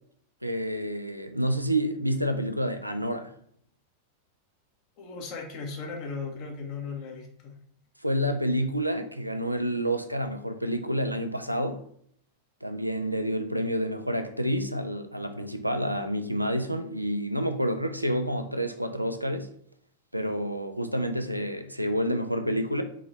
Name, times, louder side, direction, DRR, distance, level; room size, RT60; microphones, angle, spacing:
voice 1, 0.4-3.3 8.0-11.8 12.6-19.5 20.1-22.8, equal, 90° right, 0.4 m, -29 dB
voice 2, 5.0-7.5, left 4 dB, 40° left, 1.1 m, -37 dB
3.8 x 3.0 x 3.9 m
figure-of-eight pair, 90°, 0 cm